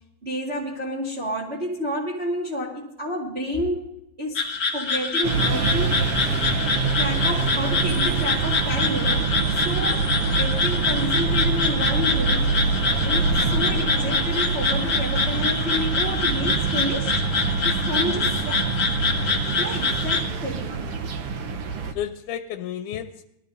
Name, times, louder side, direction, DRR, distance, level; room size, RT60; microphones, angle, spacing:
voice 1, 0.2-3.9 4.2-4.4 4.7-6.0 7.0-17.2 17.6-18.6 19.6-20.9, left 1 dB, 25° right, -4 dB, 1.7 m, -30 dB
sound 1, 4.4-20.2, left 4 dB, 45° left, 1.5 m, -25 dB
sound 2, 5.2-21.9, right 4 dB, 65° right, 1.5 m, -25 dB
voice 2, 6.3-6.6 18.0-18.2 19.7-19.8 21.9-23.2, left 10 dB, 85° left, 7 dB, 2.3 m, -33 dB
20.5 x 14.0 x 2.6 m, 0.84 s
omnidirectional pair, 3.6 m